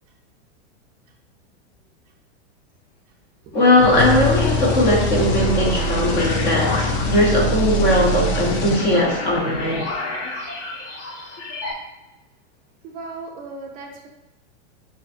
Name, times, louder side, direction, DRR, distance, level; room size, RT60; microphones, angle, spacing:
voice 1, 3.5-9.9, left 1 dB, 25° left, -2 dB, 0.7 m, -19 dB
sound 1, 3.8-9.3, equal, 70° left, 0.7 m, -23 dB
sound 2, 5.1-11.7, left 2 dB, 85° left, 1.2 m, -32 dB
voice 2, 12.9-14.1, right 3 dB, 25° right, 1 dB, 0.5 m, -36 dB
6.1 x 2.5 x 2.5 m, 0.98 s
supercardioid pair, 155°, 34 cm